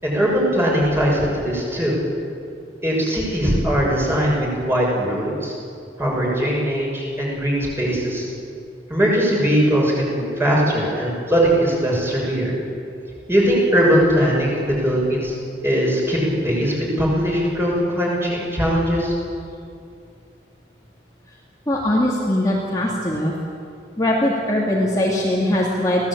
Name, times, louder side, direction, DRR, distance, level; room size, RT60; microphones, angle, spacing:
voice 1, 0.0-2.0 2.8-5.5 6.0-8.3 8.9-12.6 13.3-15.3 15.6-19.1, equal, 15° right, -4 dB, 6.7 m, -20 dB
voice 2, 21.7-23.3 24.0-26.1, left 1 dB, 20° left, -4 dB, 2.6 m, -21 dB
25.5 x 17.5 x 8.8 m, 2.4 s
head